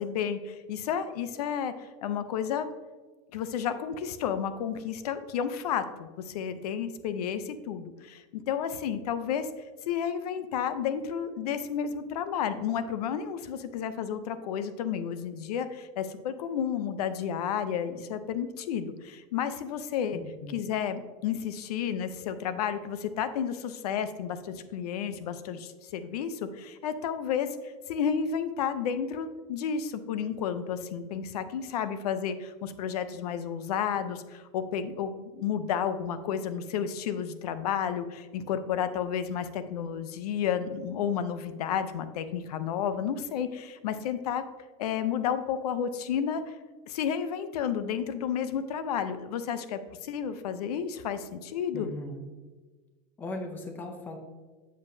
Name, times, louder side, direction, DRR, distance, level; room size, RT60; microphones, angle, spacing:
voice 1, 0.0-2.7 3.3-9.5 9.9-20.2 20.5-44.4 44.8-46.6 46.9-51.9, left 8 dB, 85° left, 11 dB, 0.6 m, -31 dB
voice 2, 20.1-20.5 51.7-52.2 53.2-54.2, left 2 dB, 10° left, 5 dB, 0.5 m, -38 dB
7.5 x 7.1 x 2.7 m, 1.3 s
supercardioid pair, 175°, 19 cm